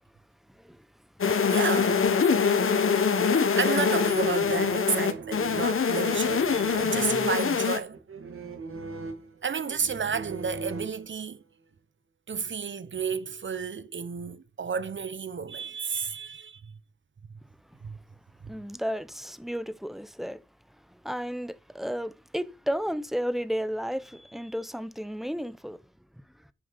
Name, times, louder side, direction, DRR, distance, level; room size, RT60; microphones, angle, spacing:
sound 1, 1.2-7.8, left 6 dB, 85° left, 1.3 m, -24 dB
voice 1, 1.5-2.0 2.9-3.0 3.6-8.0 9.4-11.4 12.3-16.7 17.8-18.0, right 6 dB, 65° right, 1.0 m, -32 dB
sound 2, 3.9-11.4, right 3 dB, 85° right, 2.0 m, -40 dB
voice 2, 18.5-20.4 20.9-25.8, equal, ahead, 0.9 m, -33 dB
9.4 x 6.5 x 5.7 m
cardioid pair, 60°, 21 cm